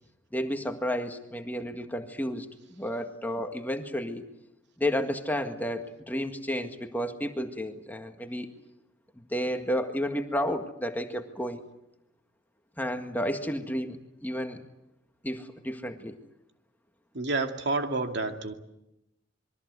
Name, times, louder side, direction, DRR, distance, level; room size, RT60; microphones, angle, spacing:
voice 1, 0.3-4.2 4.8-8.5 9.2-11.6 12.8-14.6 15.2-16.1, equal, 10° left, 6 dB, 1.8 m, -32 dB
voice 2, 17.1-18.5, right 3 dB, 60° right, 5 dB, 2.5 m, -29 dB
26.5 x 23.5 x 8.3 m, 0.85 s
head